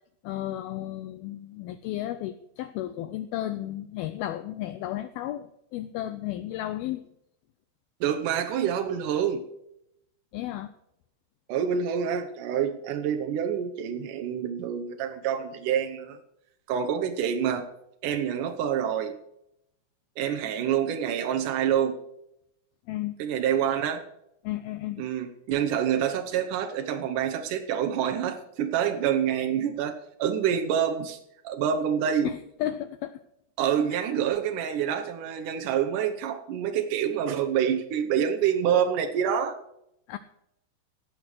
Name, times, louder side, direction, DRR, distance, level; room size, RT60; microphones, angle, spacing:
voice 1, 0.2-7.0 10.3-10.7 22.9-23.2 24.4-25.0 32.2-33.1 33.9-34.0 40.1-40.2, left 13 dB, 85° left, 11 dB, 2.2 m, -33 dB
voice 2, 8.0-9.4 11.5-16.2 16.7-17.7 18.0-19.1 20.2-22.0 23.2-24.0 25.0-31.2 31.4-32.3 33.6-39.6, right 8 dB, 80° right, 6 dB, 1.8 m, -27 dB
17.0 x 6.5 x 6.1 m, 0.79 s
omnidirectional pair, 5.0 m